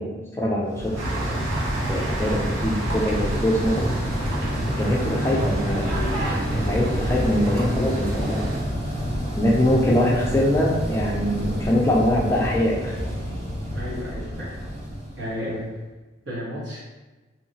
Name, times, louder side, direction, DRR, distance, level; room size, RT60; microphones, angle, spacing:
voice 1, 0.0-1.4 1.9-3.9 4.7-8.5 9.4-13.0, left 1 dB, 15° left, -3 dB, 0.3 m, -23 dB
sound 1, 0.7-15.7, equal, 30° right, 0.8 m, -28 dB
sound 2, 1.0-8.6, right 1 dB, 85° right, 0.9 m, -31 dB
voice 2, 13.7-14.5 15.2-15.7 16.2-16.8, equal, 60° right, -8 dB, 1.2 m, -32 dB
2.9 x 2.8 x 2.7 m, 1.2 s
head